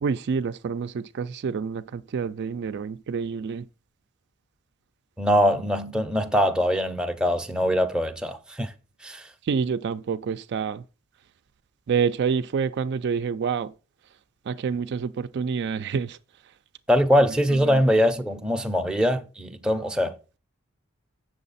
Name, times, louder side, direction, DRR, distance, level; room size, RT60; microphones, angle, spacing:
voice 1, 0.0-3.7 9.4-10.8 11.9-13.7 14.5-16.2 17.5-17.8, right 6 dB, 55° right, 0.3 m, -27 dB
voice 2, 5.2-8.7 9.0-9.3 16.9-20.4, equal, 5° right, 0.6 m, -23 dB
7.6 x 6.3 x 4.0 m
head